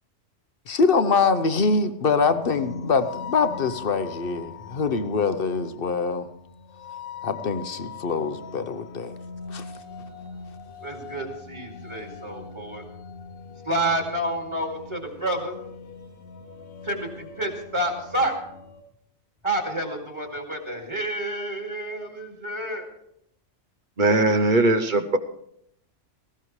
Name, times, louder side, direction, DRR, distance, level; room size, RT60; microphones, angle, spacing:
voice 1, 0.7-6.3 7.2-9.1 9.5-9.6, left 4 dB, 50° left, 0.9 m, -24 dB
sound 1, 2.2-18.8, left 5 dB, 80° left, 1.4 m, -41 dB
voice 2, 10.8-12.8 13.6-15.6 16.8-18.3 19.4-22.9, right 1 dB, 20° right, 2.4 m, -29 dB
voice 3, 24.0-25.2, right 2 dB, 45° right, 0.8 m, -20 dB
18.0 x 15.5 x 3.2 m
omnidirectional pair, 1.4 m